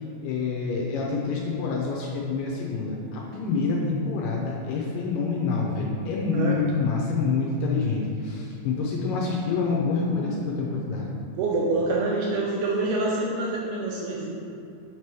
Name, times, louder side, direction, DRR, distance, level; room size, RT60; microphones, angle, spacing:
voice 1, 0.2-11.1, left 4 dB, 80° left, -2 dB, 2.1 m, -27 dB
voice 2, 11.4-14.3, right 2 dB, 85° right, -3 dB, 1.8 m, -26 dB
7.4 x 3.0 x 4.7 m, 2.6 s
omnidirectional pair, 4.3 m